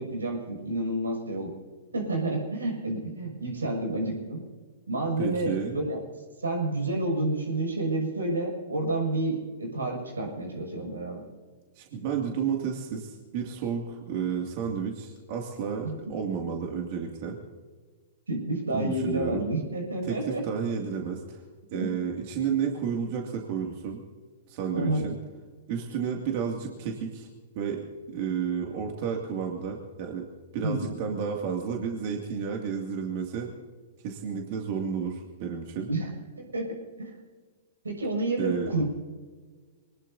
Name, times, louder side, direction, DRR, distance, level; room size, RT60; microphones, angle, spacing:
voice 1, 0.0-1.5 1.9-4.4 4.9-6.0 6.4-11.2 15.8-15.9 18.3-20.4 21.7-21.9 24.7-25.0 30.6-30.9 35.9-36.1 36.3-37.1 37.8-38.8, right 2 dB, 85° right, 1 dB, 6.4 m, -29 dB
voice 2, 5.2-5.8 11.7-17.4 18.7-19.5 20.0-21.4 21.7-24.0 24.5-25.2 25.7-27.3 27.5-30.3 30.5-33.5 34.0-35.9 38.4-38.7, right 7 dB, 45° right, 1 dB, 2.4 m, -31 dB
24.5 x 20.0 x 2.8 m, 1.5 s
figure-of-eight pair, 110°, 0 cm